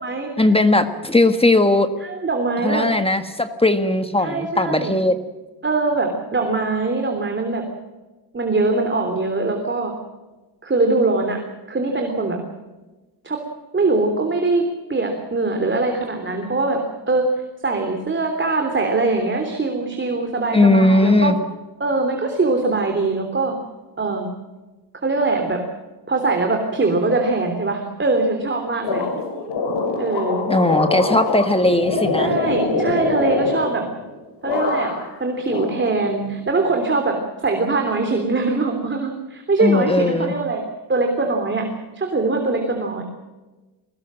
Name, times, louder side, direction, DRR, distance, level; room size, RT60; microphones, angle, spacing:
voice 1, 0.4-1.9 2.6-5.1 20.5-21.4 30.5-32.3 39.6-40.3, left 2 dB, 15° left, 8 dB, 1.5 m, -18 dB
voice 2, 2.0-2.9 4.2-4.9 5.6-7.6 8.3-9.9 10.6-11.4 11.7-12.4 13.2-13.4 13.7-14.6 14.9-16.8 17.1-17.2 17.6-21.4 21.8-23.5 24.0-24.3 25.0-25.6 26.1-29.1 30.0-30.4 32.2-33.8 34.4-34.9 35.2-40.6 40.9-41.7 41.9-43.0, right 3 dB, 25° right, 3 dB, 3.4 m, -22 dB
sound 1, 28.8-34.1 34.4-35.2 35.5-36.4, left 3 dB, 70° left, 6.6 m, -24 dB
22.5 x 19.5 x 7.6 m, 1.2 s
cardioid pair, 130°, 43 cm